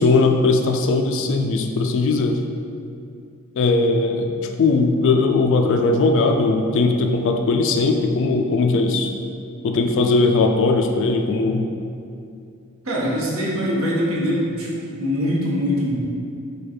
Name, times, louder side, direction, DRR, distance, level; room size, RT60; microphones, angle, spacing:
voice 1, 0.0-2.4 3.6-4.3 4.6-9.1 9.6-11.7, left 3 dB, 60° left, 3 dB, 0.3 m, -19 dB
voice 2, 12.8-15.9, equal, 65° right, -5 dB, 0.9 m, -23 dB
5.0 x 2.3 x 4.3 m, 2.5 s
head